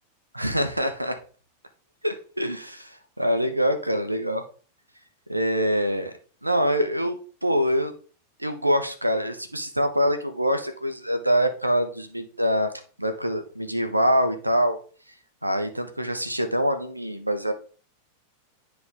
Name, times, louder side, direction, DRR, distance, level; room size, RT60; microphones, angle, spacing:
voice 1, 0.3-1.2 2.0-4.4 5.3-6.1 6.4-7.9 8.4-12.7 13.0-14.8 15.4-17.5, equal, 85° right, 8 dB, 0.7 m, -25 dB
9.5 x 3.5 x 3.5 m, 0.39 s
figure-of-eight pair, 90°, 0 cm